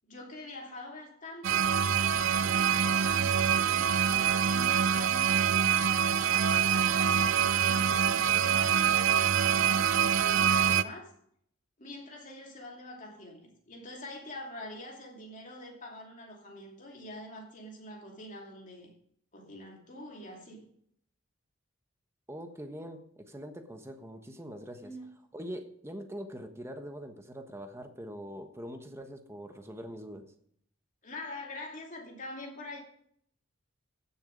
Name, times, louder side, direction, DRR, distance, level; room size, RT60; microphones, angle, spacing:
voice 1, 0.1-1.7 2.2-5.5 6.2-11.1 11.8-18.9 19.3-20.7 24.8-25.1 31.0-32.8, left 1 dB, 40° left, 2.7 m, -45 dB
sound 1, 1.4-10.8, right 8 dB, 65° right, 0.5 m, -25 dB
sound 2, 2.7-4.3 6.2-8.2, right 7 dB, 50° right, 2.8 m, -54 dB
voice 2, 22.3-24.9 25.3-30.3, equal, 15° right, 1.2 m, -43 dB
15.5 x 7.1 x 5.2 m
head